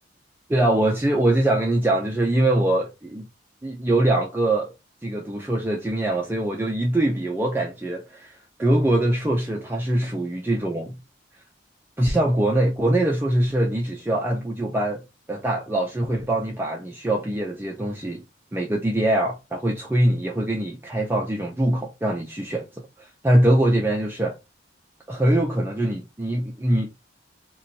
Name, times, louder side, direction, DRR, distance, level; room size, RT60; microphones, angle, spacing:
voice 1, 0.5-3.3 3.6-4.7 5.0-10.9 12.0-15.0 15.3-18.2 18.5-22.7 23.0-24.4 25.1-26.9, right 1 dB, 10° right, 0.4 m, -23 dB
2.5 x 2.2 x 3.8 m
head